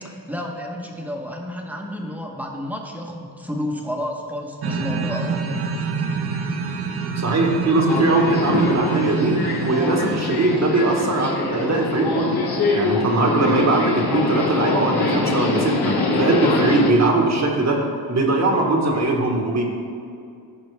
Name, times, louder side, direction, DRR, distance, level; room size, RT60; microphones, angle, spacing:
voice 1, 0.0-5.7, left 1 dB, 5° right, 0 dB, 1.1 m, -31 dB
sound 1, 4.6-11.0, right 5 dB, 90° right, 1.0 m, -27 dB
voice 2, 7.2-12.4 12.7-17.8 18.1-19.6, right 2 dB, 45° right, 1 dB, 1.4 m, -20 dB
Subway metro underground, 7.8-16.9, left 3 dB, 75° left, 1.3 m, -24 dB
14.0 x 5.3 x 3.4 m, 2.4 s
wide cardioid pair, 120°, 38 cm